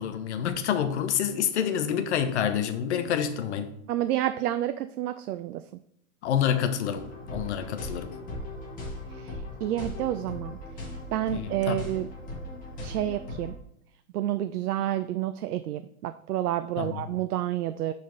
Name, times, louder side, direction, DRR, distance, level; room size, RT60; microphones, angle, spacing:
voice 1, 0.0-3.7 6.2-8.1 11.3-11.8 16.8-17.1, left 8 dB, 50° left, 9 dB, 0.8 m, -28 dB
voice 2, 3.9-5.6 9.2-10.6 11.1-12.1 12.8-13.6 14.1-17.9, right 13 dB, 85° right, 11 dB, 0.5 m, -29 dB
sound 1, 6.9-13.5, left 1 dB, 20° left, 1.6 m, -38 dB
10.5 x 4.2 x 3.2 m, 0.74 s
hypercardioid pair, 150°, 45 cm